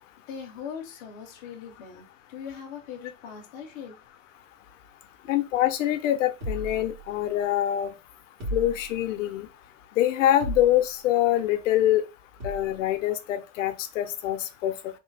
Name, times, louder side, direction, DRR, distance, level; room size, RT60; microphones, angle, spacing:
voice 1, 0.3-3.9, left 7 dB, 20° left, 0.5 m, -40 dB
voice 2, 5.3-7.9 8.5-9.5 10.0-12.0 12.4-14.7, left 12 dB, 70° left, 0.5 m, -24 dB
sound 1, 6.4-7.5 8.4-9.3 10.4-11.1 12.4-12.9, right 1 dB, 75° right, 1.8 m, -36 dB
3.2 x 2.0 x 3.2 m
supercardioid pair, 165°, 40 cm